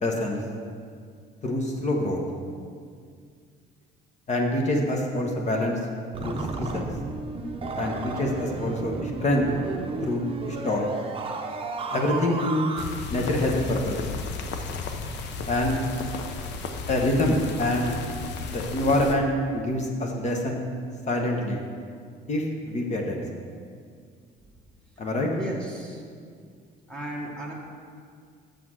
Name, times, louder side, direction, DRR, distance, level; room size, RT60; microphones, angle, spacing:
voice 1, 0.0-0.4 1.4-2.2 4.3-5.8 6.2-6.9 7.7-9.4 10.0-10.9 11.9-12.6 13.1-14.0 15.4-15.8 16.9-18.0 18.5-20.6 21.1-21.6 22.3-23.2 25.0-25.3, left 1 dB, 40° left, 1 dB, 1.1 m, -26 dB
sound 1, 6.1-12.8, right 3 dB, 30° right, 0.8 m, -33 dB
sound 2, 12.8-19.2, left 4 dB, 70° left, 0.8 m, -34 dB
voice 2, 25.3-26.0 26.9-27.5, right 1 dB, 5° left, -3 dB, 1.4 m, -34 dB
6.9 x 5.8 x 6.3 m, 2.1 s
cardioid pair, 115°, 19 cm